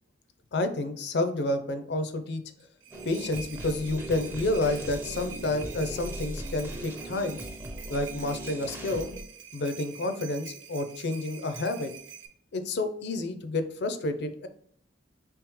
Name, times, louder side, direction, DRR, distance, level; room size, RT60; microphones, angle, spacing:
voice 1, 0.5-2.4 3.0-7.4 7.9-9.1 9.5-11.9 12.5-14.5, left 2 dB, 65° left, 9 dB, 0.5 m, -29 dB
sound 1, 2.6-12.3, right 7 dB, 80° right, 0.6 m, -45 dB
sound 2, 2.9-9.2, right 1 dB, 10° right, 0.5 m, -39 dB
3.5 x 3.2 x 3.1 m, 0.66 s
head